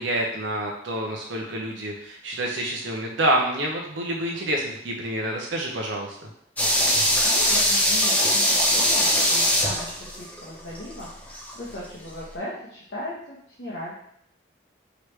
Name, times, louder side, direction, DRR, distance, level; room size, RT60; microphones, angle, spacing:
voice 1, 0.0-6.2, right 1 dB, 80° right, -1 dB, 0.7 m, -27 dB
sound 1, 6.6-11.5 11.8-11.9, equal, 10° left, 0.5 m, -21 dB
voice 2, 7.2-13.9, left 1 dB, 75° left, -7 dB, 1.0 m, -37 dB
4.9 x 3.1 x 3.2 m, 0.69 s
head